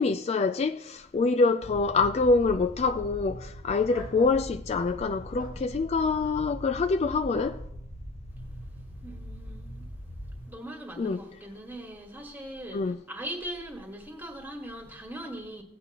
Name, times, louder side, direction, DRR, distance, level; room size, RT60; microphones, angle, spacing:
voice 1, 0.0-7.6 11.0-11.2 12.7-13.0, left 4 dB, 35° left, 0.3 m, -25 dB
sound 1, 1.6-10.5, equal, 70° left, 2.3 m, -41 dB
sound 2, 3.9-4.4 5.3-5.6 7.3-7.6, equal, 55° left, 1.6 m, -44 dB
voice 2, 9.0-9.9 10.4-15.6, right 1 dB, 10° right, 1.6 m, -40 dB
16.5 x 8.3 x 2.9 m
head